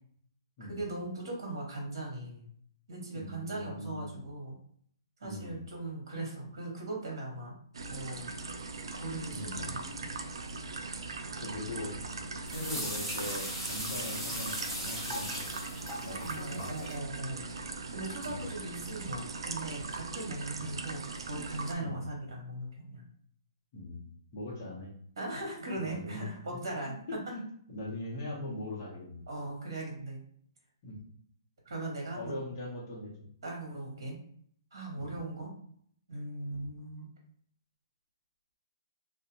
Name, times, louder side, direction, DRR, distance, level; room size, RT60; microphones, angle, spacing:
voice 1, 0.6-2.5 2.9-4.6 5.2-7.5 7.8-8.3 8.9-10.1 16.2-17.4 17.9-23.0 25.2-26.9 29.3-30.2 31.6-32.4 33.4-34.2 34.7-35.5 36.1-37.0, right 2 dB, 55° right, -1 dB, 1.2 m, -39 dB
voice 2, 3.1-4.2 5.2-5.6 9.3-10.1 11.4-11.9 12.5-15.6 16.0-16.8 18.3-18.5 20.6-20.8 21.8-22.1 23.7-24.9 25.7-26.2 27.1-27.4 27.7-29.2 30.8-31.0 32.1-33.1 35.0-35.1 36.5-36.7, left 1 dB, 30° left, -4 dB, 0.8 m, -41 dB
sound 1, 7.7-21.8, right 3 dB, 75° right, 0.3 m, -40 dB
sound 2, 12.5-17.0, equal, 5° right, 0.4 m, -38 dB
2.4 x 2.1 x 2.8 m, 0.62 s
hypercardioid pair, 175°, 3 cm